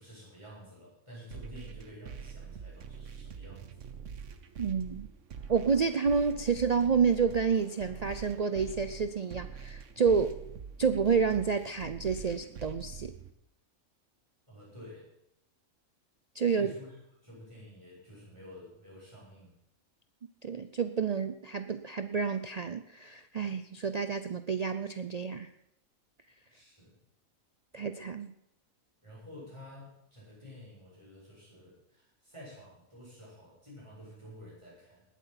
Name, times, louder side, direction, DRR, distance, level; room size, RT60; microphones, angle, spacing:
voice 1, 0.0-4.0 14.5-15.1 16.5-19.6 26.5-27.0 29.0-35.0, left 1 dB, 20° right, -6 dB, 7.4 m, -50 dB
sound 1, 1.3-13.3, right 7 dB, 60° right, 1.2 m, -45 dB
voice 2, 4.6-5.1 5.5-10.4 10.8-13.1 16.3-16.7 20.4-25.5 27.7-28.3, right 6 dB, 80° right, 10 dB, 0.3 m, -29 dB
19.5 x 8.4 x 5.8 m, 0.79 s
omnidirectional pair, 1.5 m